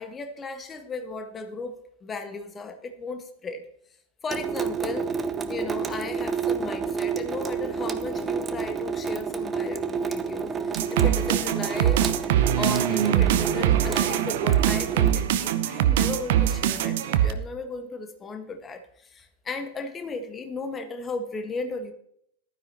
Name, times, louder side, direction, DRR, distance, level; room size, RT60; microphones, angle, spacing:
voice 1, 0.0-1.7 2.0-3.7 4.2-5.1 5.5-12.0 12.6-21.9, left 3 dB, 20° left, 7 dB, 1.6 m, -35 dB
Water tap faucet / Sink (filling or washing) / Drip, 4.3-15.1, right 6 dB, 20° right, 0.9 m, -30 dB
sound 1, 10.8-17.3, right 11 dB, 55° right, 0.8 m, -23 dB
14.5 x 12.5 x 3.0 m, 0.70 s
figure-of-eight pair, 90°, 0 cm